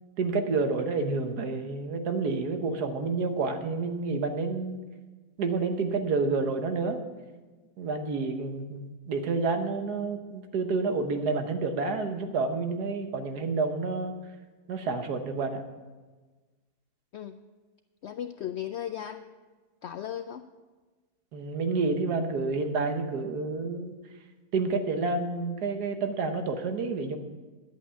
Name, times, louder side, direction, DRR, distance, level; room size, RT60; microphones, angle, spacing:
voice 1, 0.2-4.8 5.4-7.0 7.8-14.1 14.7-15.6 21.3-23.9 24.5-27.2, right 4 dB, 80° right, 6 dB, 1.6 m, -29 dB
voice 2, 18.0-19.4 19.8-20.4, left 10 dB, 85° left, 9 dB, 0.6 m, -36 dB
11.0 x 8.3 x 6.9 m, 1.3 s
omnidirectional pair, 1.7 m